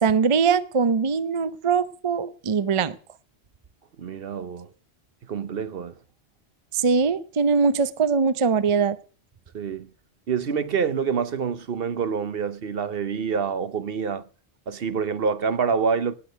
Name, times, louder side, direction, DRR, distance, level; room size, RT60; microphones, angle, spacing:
voice 1, 0.0-3.0 6.7-9.0, right 5 dB, 35° right, 0.6 m, -22 dB
voice 2, 4.0-4.7 5.3-5.9 9.5-9.9 10.3-14.2 14.7-16.1, right 6 dB, 60° right, 1.0 m, -26 dB
19.0 x 6.4 x 6.7 m
omnidirectional pair, 1.1 m